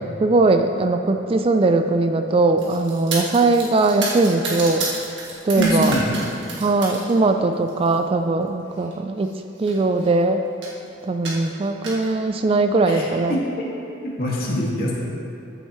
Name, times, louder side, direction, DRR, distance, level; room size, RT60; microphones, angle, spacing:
voice 1, 0.2-4.8 5.4-5.9 6.6-9.3 9.6-10.4 11.0-13.4, right 3 dB, 30° right, 7 dB, 0.3 m, -20 dB
sound 1, 2.6-7.1 7.5-8.0 8.8-8.9 9.2-9.3 9.6-10.1 10.6-10.8 11.2-12.1, right 2 dB, 60° right, 1.8 m, -30 dB
voice 2, 5.6-6.1 12.9-13.7 14.0-14.9, equal, 50° left, -5 dB, 2.0 m, -24 dB
14.0 x 7.9 x 3.1 m, 2.8 s
head